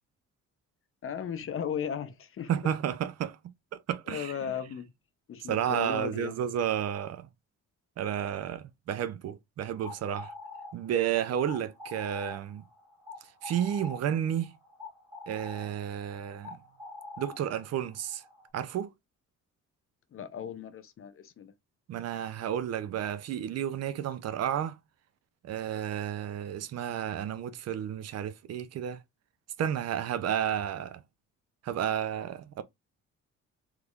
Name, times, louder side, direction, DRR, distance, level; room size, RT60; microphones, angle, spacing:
voice 1, 1.0-2.5 4.1-4.9 5.3-6.4 20.1-21.5, left 8 dB, 45° left, 0.6 m, -36 dB
voice 2, 2.5-3.4 3.7-4.3 5.5-7.3 8.0-10.3 10.7-12.6 13.4-14.5 15.3-16.6 17.2-18.2 18.5-18.9 21.9-24.8 25.4-29.0 29.6-31.0 31.6-32.6, right 9 dB, 55° right, 0.5 m, -31 dB
sound 1, 9.6-18.5, left 3 dB, 20° right, 2.0 m, -46 dB
3.5 x 3.2 x 2.4 m
cardioid pair, 90°, 30 cm